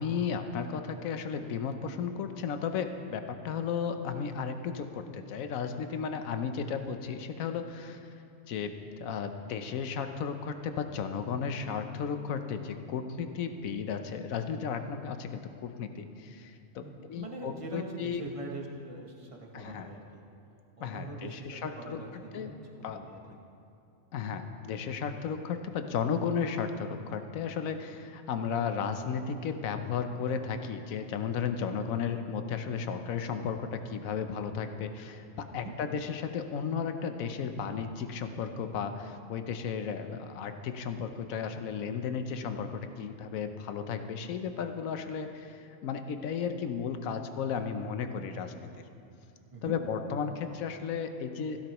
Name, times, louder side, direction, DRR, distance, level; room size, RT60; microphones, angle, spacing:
voice 1, 0.0-8.1 8.5-8.7 9.0-16.8 17.1-18.3 19.5-19.9 20.8-22.5 22.8-23.0 24.1-48.5 49.6-51.6, left 6 dB, 70° left, 8 dB, 1.1 m, -34 dB
voice 2, 16.8-20.2 20.8-23.4 35.5-35.7 49.5-49.7, right 3 dB, 25° right, 0 dB, 1.0 m, -43 dB
16.0 x 11.5 x 3.0 m, 2.6 s
omnidirectional pair, 1.5 m